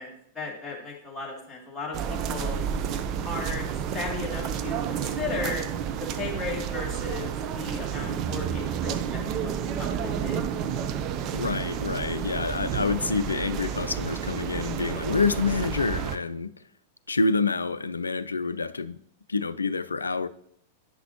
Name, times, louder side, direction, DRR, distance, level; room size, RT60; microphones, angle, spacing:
voice 1, 0.0-2.6 3.2-3.6 3.9-5.6 6.0-10.4, left 3 dB, 10° left, 2.4 m, -35 dB
sound 1, 1.9-16.2, right 8 dB, 35° right, 0.5 m, -31 dB
voice 2, 11.3-16.5 17.1-19.0 19.3-20.3, left 4 dB, 80° left, 0.3 m, -27 dB
9.5 x 5.9 x 2.8 m
figure-of-eight pair, 95°, 0 cm